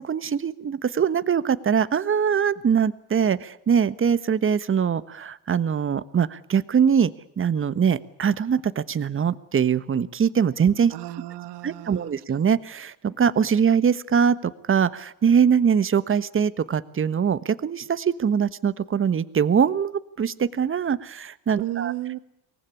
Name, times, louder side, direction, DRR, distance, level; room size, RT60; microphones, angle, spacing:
voice 1, 0.0-7.1 7.4-10.9 11.6-21.9, right 7 dB, 30° right, 15 dB, 1.3 m, -22 dB
voice 2, 10.9-12.1 21.6-22.2, right 16 dB, 70° right, 12 dB, 1.8 m, -33 dB
23.5 x 19.0 x 9.9 m, 0.79 s
supercardioid pair, 95°, 42 cm